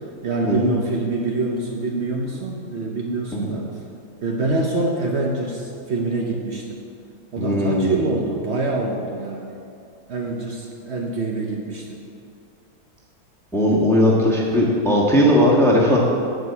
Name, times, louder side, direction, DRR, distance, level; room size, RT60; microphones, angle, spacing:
voice 1, 0.2-3.7 4.2-6.8 7.3-9.6 10.1-12.0 13.8-14.4 15.5-15.6, right 2 dB, 75° right, 0 dB, 0.6 m, -25 dB
voice 2, 7.4-8.0 13.5-16.0, left 1 dB, ahead, -3 dB, 1.0 m, -18 dB
9.6 x 5.1 x 8.1 m, 2.5 s
omnidirectional pair, 2.3 m